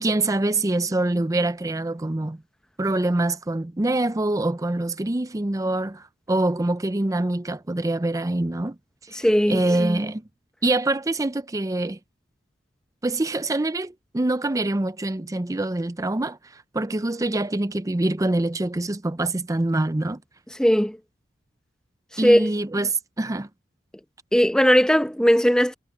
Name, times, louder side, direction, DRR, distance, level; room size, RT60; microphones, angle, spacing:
voice 1, 0.0-2.4 2.8-8.8 9.1-9.2 9.5-10.2 10.6-12.0 13.0-20.2 22.2-23.5, right 2 dB, 20° right, 0.5 m, -25 dB
voice 2, 9.1-9.6 20.6-21.0 22.2-22.5 24.3-25.7, equal, 5° left, 0.8 m, -18 dB
head